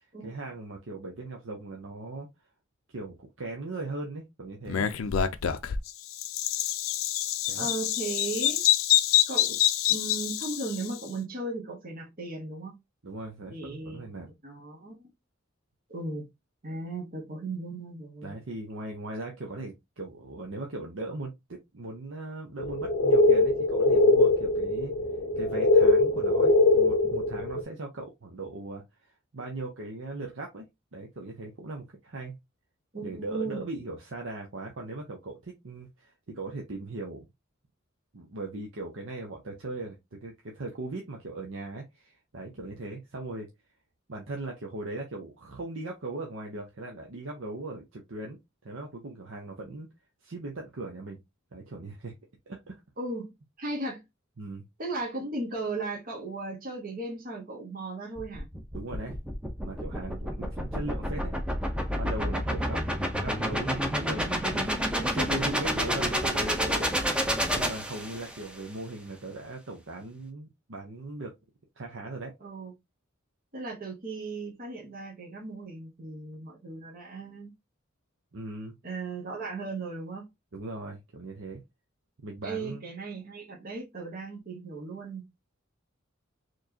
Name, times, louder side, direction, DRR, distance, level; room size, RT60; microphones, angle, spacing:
voice 1, 0.2-2.3 2.9-4.9 7.5-7.8 13.0-14.3 18.2-24.9 25.4-28.8 29.3-30.7 30.9-32.4 33.0-37.3 38.1-43.5 44.1-49.9 50.2-51.2 51.5-52.1 52.5-52.8 54.4-54.6 58.7-59.2 59.6-61.3 61.9-62.8 63.1-71.3 71.8-72.3 78.3-78.8 80.5-81.6 82.2-82.8, right 2 dB, 65° right, 0.8 m, -39 dB
Bird vocalization bird call bird song, 4.7-11.0, left 11 dB, 85° left, 0.5 m, -26 dB
voice 2, 7.5-8.6 9.3-12.8 13.5-14.0 14.4-15.1 15.9-16.3 16.6-18.4 32.9-33.6 53.0-53.3 53.6-54.0 54.8-58.5 72.4-72.7 73.5-77.5 78.8-80.3 82.4-85.2, right 3 dB, 45° right, 1.3 m, -36 dB
sound 1, 22.6-27.6, left 2 dB, 45° left, 0.6 m, -22 dB
sound 2, 58.2-68.5, equal, 5° right, 0.7 m, -29 dB
4.4 x 3.1 x 2.8 m
head